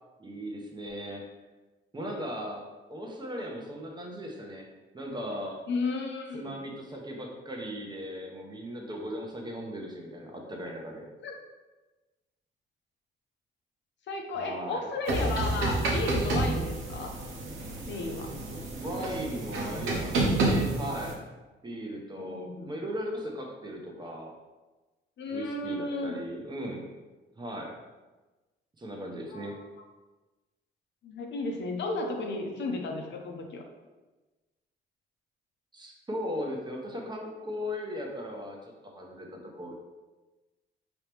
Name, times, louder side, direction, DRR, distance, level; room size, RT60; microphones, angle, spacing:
voice 1, 0.2-1.3 1.9-4.7 4.9-5.6 6.3-11.1 14.4-14.8 18.5-21.2 21.6-24.3 25.3-26.9 27.4-27.8 28.8-29.6 35.7-39.8, equal, 20° right, 0 dB, 0.9 m, -38 dB
voice 2, 5.7-6.6 11.2-11.4 14.1-17.1 17.9-18.3 22.1-22.7 25.2-26.2 29.3-29.6 31.0-33.6, left 3 dB, 65° left, 2 dB, 0.8 m, -34 dB
sound 1, 15.1-21.1, right 2 dB, 85° right, 0.9 m, -29 dB
4.8 x 3.0 x 3.4 m, 1.2 s
cardioid pair, 90°, 20 cm